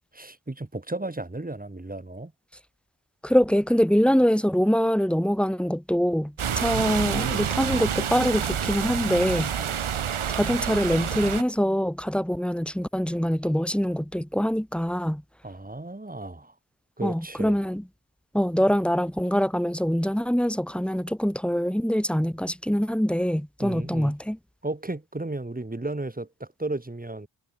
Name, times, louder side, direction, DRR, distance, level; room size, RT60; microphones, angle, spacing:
voice 1, 0.1-2.3 6.5-6.7 9.6-9.8 15.4-16.5 17.0-17.5 23.6-24.1 24.6-27.3, right 2 dB, 15° right, 7.4 m, -34 dB
voice 2, 3.2-9.5 10.3-15.2 17.0-17.8 18.3-24.4, equal, ahead, 5.0 m, -24 dB
sound 1, 6.4-11.4, right 8 dB, 75° right, 4.5 m, -28 dB
cardioid pair, 100°, 49 cm